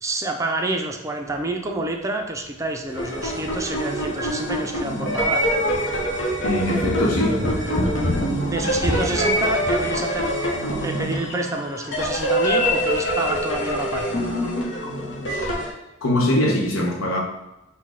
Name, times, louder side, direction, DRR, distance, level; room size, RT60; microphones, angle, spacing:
voice 1, 0.0-5.4 8.4-10.4 10.8-14.2, right 2 dB, 15° right, 3 dB, 0.4 m, -28 dB
sound 1, 1.3-1.5 1.8-1.9 2.8-4.3 4.6-4.7 5.3-10.0, left 1 dB, 30° left, 0.6 m, -30 dB
sound 2, 2.9-15.7, equal, 65° left, 0.9 m, -25 dB
sound 3, 4.2-5.5, equal, 15° left, 1.2 m, -41 dB
voice 2, 6.4-7.4 15.4-15.5 16.0-17.2, left 1 dB, 90° left, 0 dB, 0.9 m, -22 dB
6.2 x 2.2 x 3.6 m, 0.94 s
head